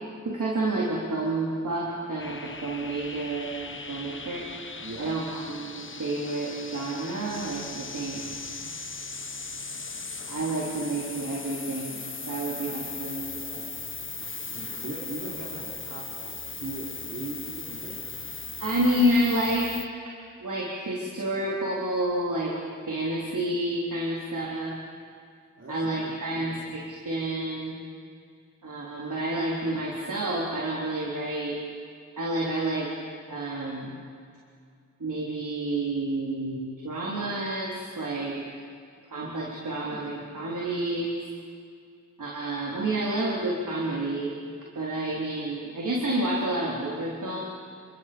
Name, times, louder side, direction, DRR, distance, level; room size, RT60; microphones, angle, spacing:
voice 1, 0.2-4.5 5.0-8.2 10.3-12.0 12.3-13.7 18.6-19.7 20.4-22.6 22.9-24.8 25.7-27.8 28.6-31.6 32.2-32.9 33.3-33.9 35.0-38.4 39.1-41.2 42.2-47.4, right 1 dB, 85° right, -4 dB, 3.8 m, -29 dB
sound 1, 2.2-19.9, left 4 dB, 40° left, 1.2 m, -38 dB
voice 2, 4.8-5.1 14.5-18.1 25.6-26.7, right 2 dB, 55° right, -6 dB, 4.1 m, -40 dB
29.5 x 25.0 x 5.3 m, 2.3 s
wide cardioid pair, 70°, 31 cm